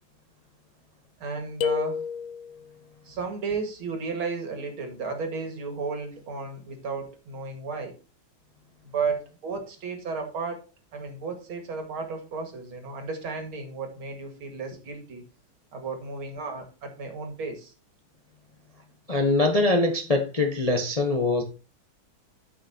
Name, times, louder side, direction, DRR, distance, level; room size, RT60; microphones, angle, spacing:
voice 1, 1.2-2.0 3.0-7.9 8.8-10.6 10.9-15.2 15.7-17.7, right 4 dB, 80° right, 4 dB, 2.7 m, -33 dB
sound 1, 1.6-2.7, left 8 dB, 85° left, 0.8 m, -29 dB
voice 2, 19.1-21.4, left 2 dB, 35° left, 3 dB, 0.6 m, -23 dB
14.0 x 5.7 x 2.8 m, 0.32 s
omnidirectional pair, 2.3 m